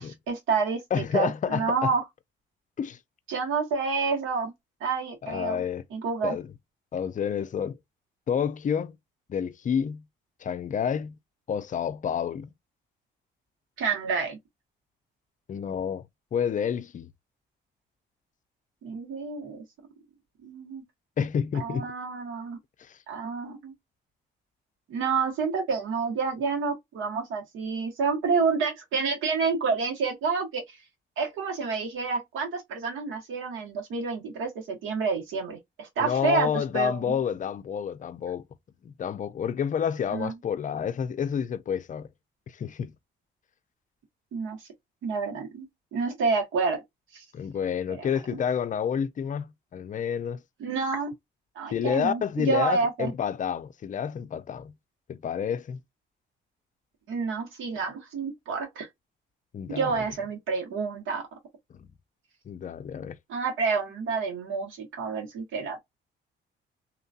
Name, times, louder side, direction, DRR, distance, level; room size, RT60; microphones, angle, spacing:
voice 1, 0.0-2.0 3.3-4.5 4.8-5.6 5.9-6.3 13.8-14.4 18.8-19.6 20.4-20.8 21.5-22.6 23.1-23.7 24.9-30.8 31.2-37.2 40.1-40.3 44.3-44.7 45.0-46.8 47.1-47.2 47.9-48.4 50.6-51.1 51.5-53.1 57.1-58.9 59.7-61.3 63.3-65.8, right 5 dB, 85° right, 1.5 m, -29 dB
voice 2, 0.9-1.9 2.8-3.0 5.2-5.8 6.2-6.4 6.9-7.8 8.3-8.9 9.3-10.0 10.4-11.2 11.5-12.5 15.5-16.0 16.3-17.1 21.2-21.9 22.8-23.0 36.0-38.4 38.8-42.1 42.5-42.9 47.3-50.4 51.7-54.7 55.1-55.8 59.5-60.0 61.7-61.9 62.5-63.2, left 7 dB, 40° left, 0.5 m, -29 dB
2.9 x 2.6 x 2.4 m
cardioid pair, 90°, 20 cm